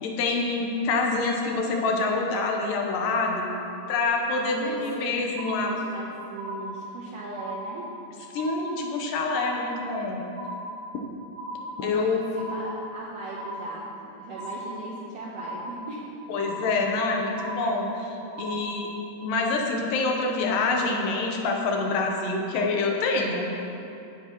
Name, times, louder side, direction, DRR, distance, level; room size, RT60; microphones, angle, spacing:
voice 1, 0.0-3.5 3.9-5.7 8.3-10.2 11.8-12.2 16.3-18.1 18.4-18.9 19.2-23.5, left 3 dB, 75° left, 1 dB, 2.5 m, -26 dB
voice 2, 4.3-7.9 11.8-13.9 14.2-16.1, right 2 dB, 70° right, -4 dB, 1.6 m, -38 dB
sound 1, 4.7-5.1 5.4-6.1 6.4-7.1 7.4-8.1 8.4-9.1 9.4-10.1 10.4-11.1 11.4-12.1 12.4-13.1 13.4-14.1 14.4-15.1 15.4-16.1 16.4-17.1 17.4-18.1 18.4-19.1, equal, 85° right, 3.0 m, -37 dB
16.5 x 8.4 x 2.9 m, 2.8 s
omnidirectional pair, 4.0 m